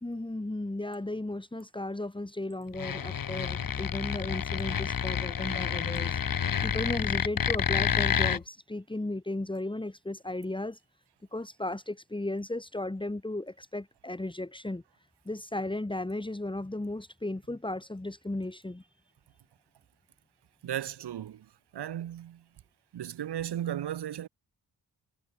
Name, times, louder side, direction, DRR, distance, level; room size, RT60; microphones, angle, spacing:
voice 1, 0.0-10.8 11.3-14.8 15.2-18.9, left 2 dB, 10° left, 3.4 m, -35 dB
sound 1, 2.7-8.4, left 7 dB, 55° left, 2.8 m, -29 dB
voice 2, 20.6-21.5 21.7-22.4 22.9-24.3, right 11 dB, 90° right, 2.5 m, -35 dB
cardioid pair, 90°, 39 cm